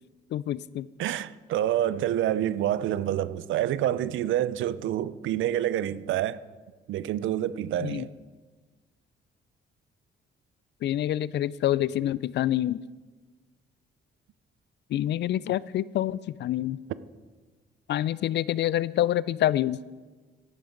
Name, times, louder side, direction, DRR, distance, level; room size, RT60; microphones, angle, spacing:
voice 1, 0.3-0.9 7.8-8.1 10.8-12.8 14.9-16.8 17.9-19.8, left 12 dB, 60° left, 0.4 m, -27 dB
voice 2, 1.0-6.4 6.9-8.1, right 12 dB, 80° right, 0.5 m, -27 dB
13.5 x 10.5 x 3.9 m
cardioid pair, 90°, 20 cm